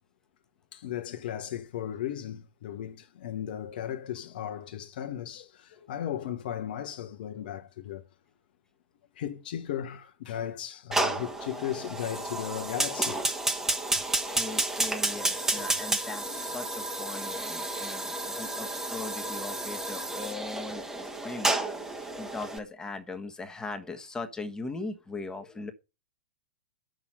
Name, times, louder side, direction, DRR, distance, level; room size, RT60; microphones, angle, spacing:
voice 1, 0.7-8.0 9.1-13.2 16.3-16.4, left 10 dB, 55° left, 1.0 m, -36 dB
Fire, 10.9-22.6, right 2 dB, 10° right, 1.4 m, -31 dB
voice 2, 14.3-25.7, left 3 dB, 10° left, 1.4 m, -39 dB
8.5 x 6.3 x 5.6 m
figure-of-eight pair, 100°, 6 cm